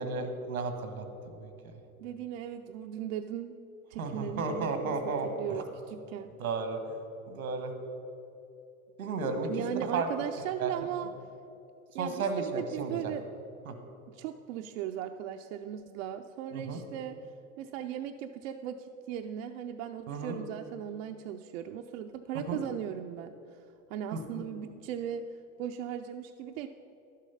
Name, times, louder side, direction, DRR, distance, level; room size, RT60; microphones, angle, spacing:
voice 1, 0.0-1.7 4.0-5.6 6.4-7.0 7.3-7.7 9.0-10.1 10.6-10.7 11.9-13.1 13.7-13.8 16.5-16.8 20.1-20.4 22.5-22.6 24.1-24.4, right 4 dB, 90° right, 7 dB, 1.4 m, -34 dB
voice 2, 2.0-3.5 3.9-6.4 9.5-11.1 11.9-13.3 14.1-17.2 17.6-25.3 25.6-26.7, right 10 dB, 65° right, 6 dB, 0.6 m, -38 dB
11.5 x 7.4 x 5.6 m, 2.9 s
hypercardioid pair, 95°, 42 cm